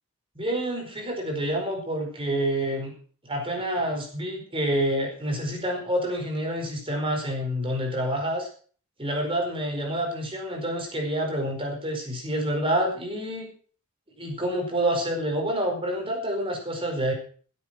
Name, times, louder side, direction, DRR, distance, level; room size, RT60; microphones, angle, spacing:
voice 1, 0.3-2.9 3.2-8.5 9.0-13.5 14.2-17.1, right 1 dB, 25° right, 2 dB, 4.8 m, -28 dB
16.5 x 8.6 x 6.2 m, 0.43 s
head